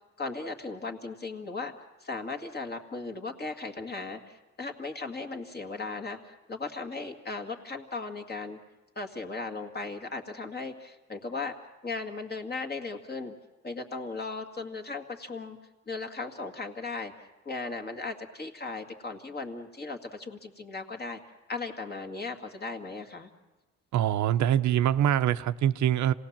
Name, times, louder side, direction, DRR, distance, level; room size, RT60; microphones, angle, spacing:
voice 1, 0.2-1.7 2.0-8.6 9.0-11.5 11.8-13.3 13.6-15.6 15.9-17.1 17.5-21.2 21.5-23.3, left 3 dB, 35° left, 4 dB, 2.0 m, -37 dB
voice 2, 23.9-26.1, right 11 dB, 70° right, 11 dB, 0.6 m, -24 dB
26.5 x 18.0 x 7.3 m, 1.2 s
cardioid pair, 90°, 30 cm